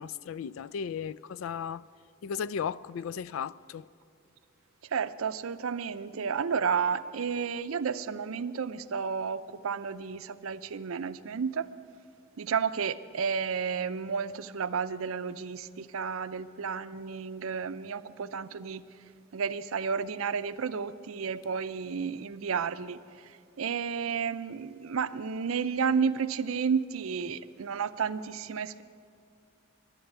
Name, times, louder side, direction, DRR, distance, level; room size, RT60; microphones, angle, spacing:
voice 1, 0.0-1.8 2.2-3.9, left 7 dB, 75° left, 0.3 m, -35 dB
voice 2, 4.8-11.7 12.4-19.0 19.3-28.8, right 6 dB, 85° right, 0.5 m, -32 dB
11.5 x 11.0 x 8.9 m
head